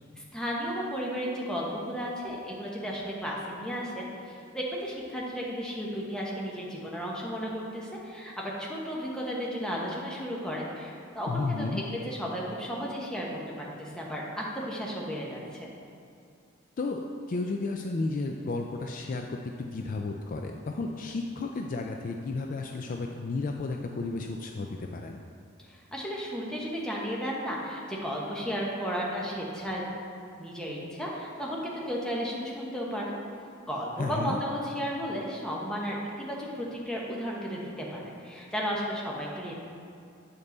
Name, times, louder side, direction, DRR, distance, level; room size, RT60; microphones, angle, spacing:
voice 1, 0.3-15.7 25.7-29.8 30.3-33.1 33.7-39.5, equal, 5° left, -4 dB, 1.0 m, -34 dB
voice 2, 11.3-11.8 16.8-17.0 17.3-25.2 34.0-34.4, left 3 dB, 40° left, 3 dB, 0.3 m, -33 dB
8.2 x 5.4 x 3.9 m, 2.5 s
head